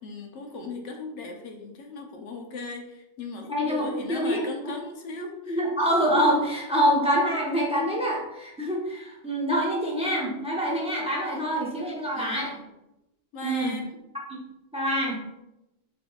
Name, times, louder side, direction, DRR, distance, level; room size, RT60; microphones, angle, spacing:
voice 1, 0.0-5.6 12.1-12.7 13.3-13.8, left 3 dB, 65° left, 3 dB, 0.9 m, -38 dB
voice 2, 3.5-4.7 5.5-12.5 13.4-13.8 14.7-15.2, equal, 5° right, -4 dB, 0.6 m, -26 dB
4.8 x 3.5 x 2.3 m, 0.92 s
omnidirectional pair, 1.4 m